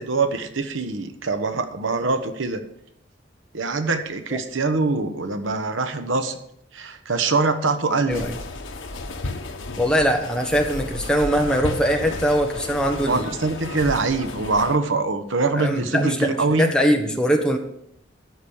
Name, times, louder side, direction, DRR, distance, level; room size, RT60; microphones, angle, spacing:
voice 1, 0.0-2.6 3.5-6.4 6.7-8.2 13.1-16.7, right 3 dB, 80° right, 9 dB, 1.1 m, -23 dB
sound 1, 8.1-14.8, left 2 dB, 80° left, 1.2 m, -33 dB
voice 2, 9.8-13.3 15.5-17.6, equal, 5° left, 2 dB, 1.2 m, -21 dB
12.5 x 5.1 x 8.7 m, 0.75 s
head